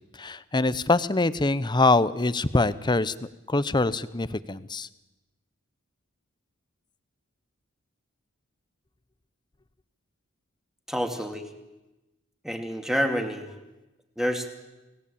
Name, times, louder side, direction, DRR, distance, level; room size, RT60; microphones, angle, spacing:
voice 1, 0.2-3.1 3.5-4.9, left 2 dB, 20° left, 16 dB, 0.8 m, -24 dB
voice 2, 10.9-11.4 12.4-13.4 14.2-14.5, equal, ahead, 5 dB, 2.5 m, -27 dB
26.5 x 18.5 x 8.6 m, 1.0 s
head